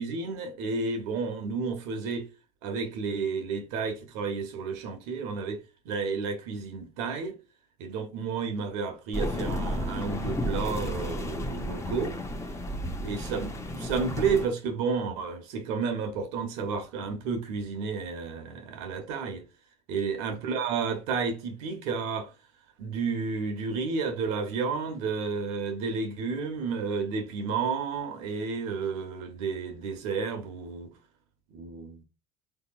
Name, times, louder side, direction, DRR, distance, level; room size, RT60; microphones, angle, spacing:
voice 1, 0.0-2.3 2.6-7.4 7.8-12.2 13.0-19.4 19.9-22.3 22.8-30.9 31.5-32.0, right 5 dB, 70° right, 0.8 m, -31 dB
sound 1, 9.1-14.5, left 1 dB, 15° left, 0.7 m, -32 dB
3.4 x 2.8 x 2.3 m
hypercardioid pair, 70°, 20 cm